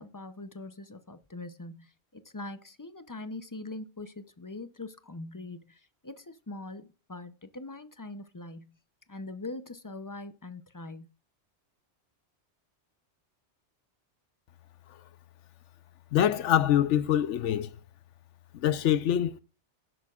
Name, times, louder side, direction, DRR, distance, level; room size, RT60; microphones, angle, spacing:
voice 1, 0.0-8.8 9.1-11.1, left 2 dB, 25° left, 0.5 m, -42 dB
voice 2, 16.1-17.8 18.5-19.3, left 10 dB, 85° left, 1.0 m, -24 dB
17.0 x 7.9 x 2.4 m
omnidirectional pair, 1.2 m